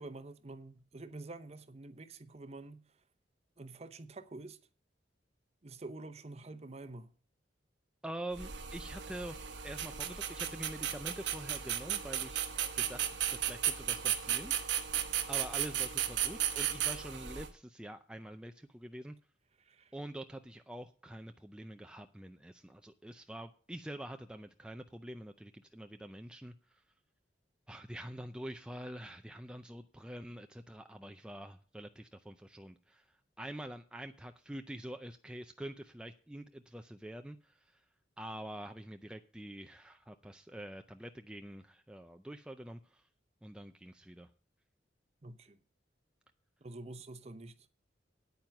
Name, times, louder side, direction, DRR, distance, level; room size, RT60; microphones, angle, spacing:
voice 1, 0.0-2.8 3.6-4.6 5.6-7.1 19.6-19.9 45.2-45.6 46.6-47.6, right 2 dB, 35° right, 0.8 m, -47 dB
voice 2, 8.0-12.5 12.7-14.7 15.3-19.2 19.9-26.8 27.7-33.1 33.4-37.8 38.2-43.0 43.4-44.3, right 1 dB, 5° right, 0.4 m, -46 dB
sound 1, 8.3-17.5, right 10 dB, 70° right, 1.0 m, -35 dB
9.4 x 8.8 x 5.9 m
head